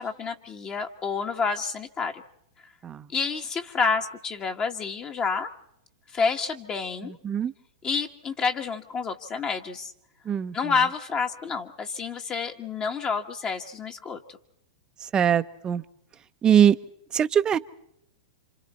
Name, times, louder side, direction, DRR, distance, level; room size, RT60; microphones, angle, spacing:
voice 1, 0.0-2.2 3.1-5.5 6.1-7.2 7.8-9.9 10.5-14.2, left 5 dB, 25° left, 5 dB, 1.5 m, -29 dB
voice 2, 15.1-15.8 16.4-16.8 17.1-17.6, right 9 dB, 20° right, 12 dB, 0.8 m, -21 dB
29.0 x 26.5 x 4.3 m, 0.76 s
hypercardioid pair, 125°, 4 cm